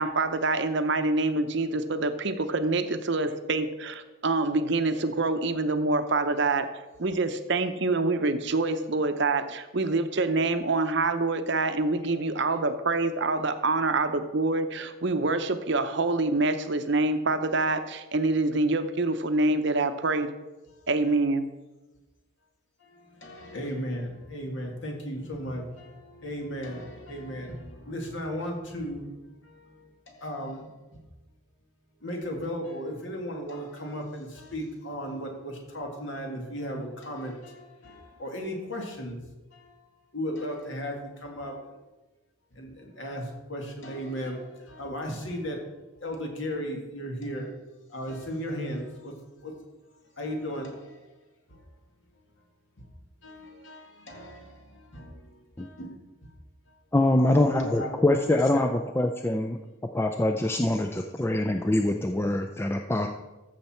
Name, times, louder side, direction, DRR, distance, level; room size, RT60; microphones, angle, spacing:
voice 1, 0.0-6.7 7.0-20.3 20.9-21.5, right 3 dB, 55° right, 10 dB, 0.7 m, -26 dB
voice 2, 22.8-29.1 29.4-29.9 30.1-31.0 32.0-39.2 39.5-39.8 40.1-41.8 42.5-45.6 46.0-47.5 47.9-49.1 49.4-49.5 50.2-51.0 51.5-51.6 53.2-55.9 56.2-56.3 57.2-58.7 60.7-60.8, equal, 60° left, 1 dB, 2.2 m, -36 dB
voice 3, 56.9-59.6 59.9-63.1, left 1 dB, 10° left, 5 dB, 0.3 m, -24 dB
14.0 x 6.8 x 4.4 m, 1.1 s
head